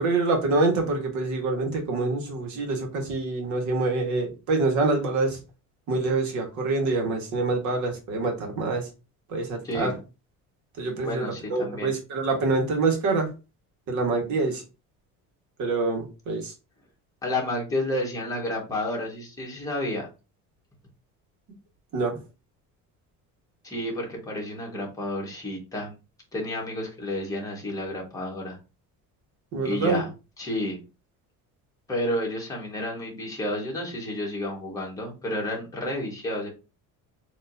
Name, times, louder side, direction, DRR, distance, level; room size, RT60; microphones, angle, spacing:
voice 1, 0.0-5.4 5.9-8.9 9.3-10.0 10.8-13.3 13.9-14.6 15.6-16.5 21.9-22.2 29.5-30.0, right 3 dB, 60° right, 2 dB, 1.6 m, -26 dB
voice 2, 9.6-10.0 11.0-11.9 17.2-20.1 23.6-25.9 26.3-28.6 29.6-30.1 30.4-30.8 31.9-36.5, left 1 dB, 10° left, -2 dB, 1.4 m, -30 dB
6.8 x 3.0 x 2.7 m, 0.30 s
cardioid pair, 175°, 32 cm